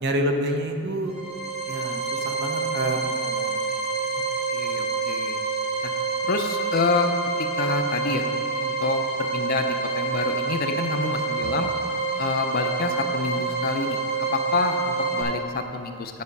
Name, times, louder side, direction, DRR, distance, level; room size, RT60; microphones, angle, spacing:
voice 1, 0.0-1.2 1.7-3.6, right 1 dB, 50° right, 4 dB, 0.7 m, -28 dB
sound 1, 1.0-15.2, right 4 dB, 65° right, 2.5 m, -27 dB
voice 2, 4.5-5.4 5.8-5.9 6.2-7.1 7.6-8.2 8.6-9.0 9.3-11.7 12.2-14.0 14.3-16.2, left 4 dB, 40° left, 6 dB, 0.5 m, -27 dB
9.5 x 6.1 x 5.4 m, 2.3 s
head